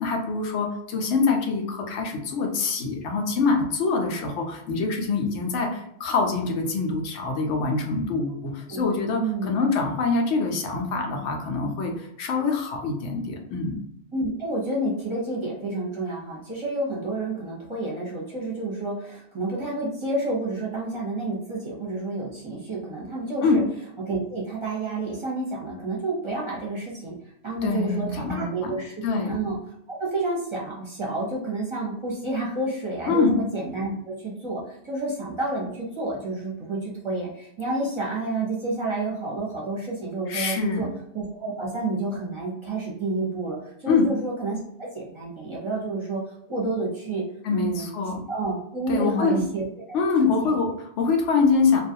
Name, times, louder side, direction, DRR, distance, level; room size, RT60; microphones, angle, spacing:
voice 1, 0.0-13.8 23.4-23.6 27.6-28.7 29.0-29.3 33.1-33.4 40.3-40.9 43.9-44.1 47.4-48.2 48.9-49.4 49.9-51.8, left 4 dB, 75° left, 2 dB, 0.9 m, -24 dB
voice 2, 9.2-9.5 14.1-23.6 24.1-29.6 29.9-40.9 41.1-46.2 46.5-47.2 47.5-47.9 48.3-50.0 50.4-50.5, right 2 dB, 30° right, -5 dB, 0.7 m, -30 dB
2.4 x 2.3 x 2.7 m, 0.76 s
omnidirectional pair, 1.2 m